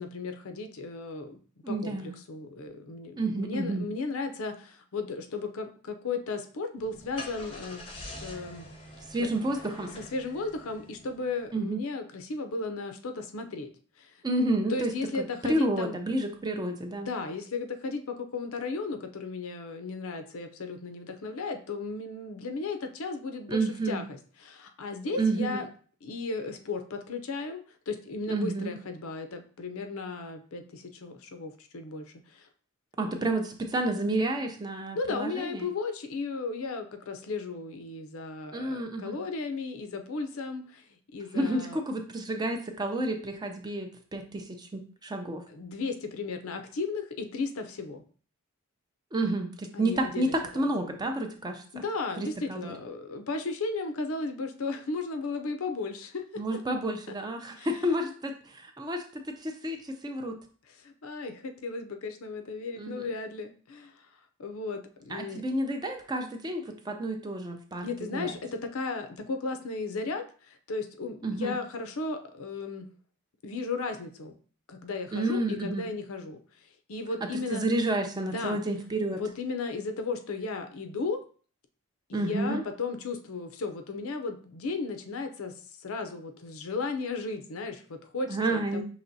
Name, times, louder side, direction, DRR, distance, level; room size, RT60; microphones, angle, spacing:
voice 1, 0.0-1.4 1.7-8.7 9.2-9.3 10.0-13.7 14.0-14.1 14.7-16.0 17.1-25.7 26.0-27.6 27.9-32.5 34.9-40.8 41.1-41.8 45.5-48.0 49.7-50.7 51.7-56.4 57.6-57.7 60.7-63.9 64.4-65.4 67.8-72.9 73.4-74.3 74.7-76.4 76.9-77.7 78.3-78.6 79.1-81.2 82.1-88.8, left 3 dB, 70° left, 7 dB, 0.5 m, -35 dB
voice 2, 1.6-2.1 3.2-3.9 9.1-9.9 11.5-11.8 14.2-14.9 15.5-17.1 23.5-24.0 25.2-25.6 28.3-28.7 33.0-35.7 38.5-39.2 41.3-45.4 49.1-51.8 52.2-52.7 56.4-60.4 62.8-63.1 65.1-68.4 71.2-71.6 75.1-75.9 77.3-79.2 82.1-82.6 88.3-88.8, right 1 dB, 20° right, 4 dB, 0.4 m, -30 dB
Car / Engine starting, 6.8-11.4, left 1 dB, 25° left, 0.6 m, -45 dB
5.7 x 3.0 x 2.7 m, 0.42 s
head